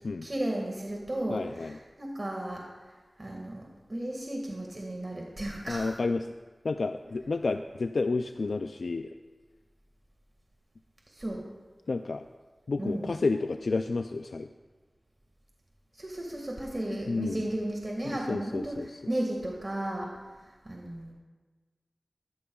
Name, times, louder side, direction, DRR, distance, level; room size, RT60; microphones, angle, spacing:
voice 1, 0.2-6.0 11.1-11.4 12.8-13.2 15.9-21.1, right 1 dB, 40° right, -1 dB, 1.7 m, -34 dB
voice 2, 1.3-1.8 5.7-6.2 6.6-9.1 11.9-12.2 12.7-14.5 17.1-17.5 18.1-19.0, left 3 dB, 85° left, 7 dB, 0.3 m, -30 dB
14.0 x 14.0 x 2.3 m, 1.3 s
wide cardioid pair, 50°, 0 cm